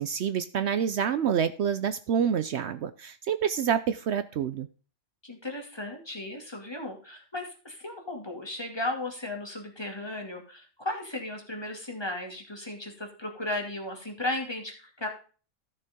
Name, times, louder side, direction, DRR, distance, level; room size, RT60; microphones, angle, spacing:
voice 1, 0.0-4.7, right 8 dB, 65° right, 13 dB, 0.9 m, -27 dB
voice 2, 5.2-15.1, left 2 dB, 20° left, 2 dB, 2.5 m, -35 dB
14.5 x 6.7 x 3.6 m, 0.38 s
omnidirectional pair, 1.3 m